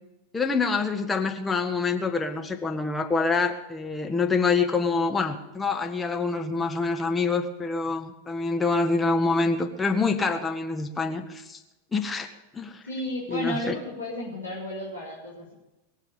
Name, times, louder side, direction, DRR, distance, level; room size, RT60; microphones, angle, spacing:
voice 1, 0.3-11.6 11.9-12.3 12.5-12.8 13.3-13.7, left 4 dB, 15° left, 5 dB, 1.6 m, -26 dB
voice 2, 12.8-15.5, left 1 dB, 85° left, -8 dB, 4.4 m, -33 dB
22.0 x 7.4 x 7.3 m, 1.0 s
figure-of-eight pair, 90°, 0 cm